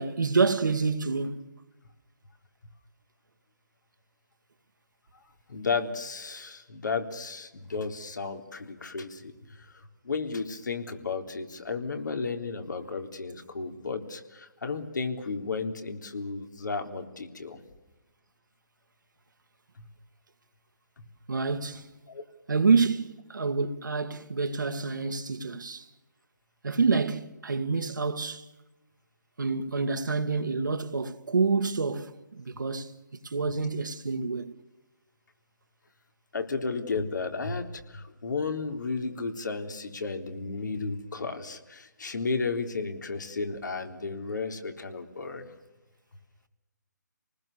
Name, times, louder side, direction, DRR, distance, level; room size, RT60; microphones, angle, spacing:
voice 1, 0.0-1.4 21.3-21.9 22.5-25.8 26.6-28.4 29.4-32.9 33.2-34.5, right 4 dB, 80° right, 2.1 m, -27 dB
voice 2, 5.5-9.3 10.0-17.6 22.1-22.2 36.3-45.5, left 4 dB, 70° left, 3.7 m, -33 dB
28.5 x 20.0 x 6.8 m
hypercardioid pair, 160°, 10 cm